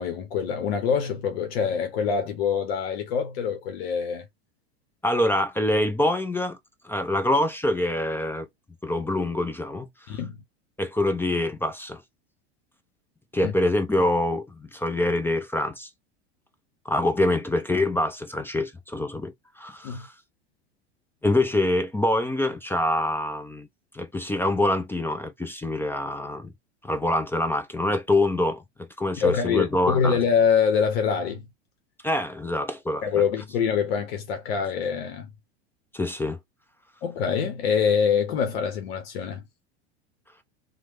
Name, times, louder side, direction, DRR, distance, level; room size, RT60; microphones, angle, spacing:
voice 1, 0.0-4.3 10.1-10.4 13.4-13.5 19.8-20.0 29.2-31.5 33.0-35.3 37.0-39.4, left 6 dB, 65° left, 0.8 m, -25 dB
voice 2, 5.0-6.6 6.8-8.5 8.8-10.2 10.8-12.0 13.3-15.9 16.9-20.1 21.2-23.7 23.9-26.5 26.8-30.2 32.0-33.2 35.9-36.4, left 1 dB, 5° left, 0.4 m, -25 dB
3.1 x 2.1 x 3.0 m
hypercardioid pair, 90°, 32 cm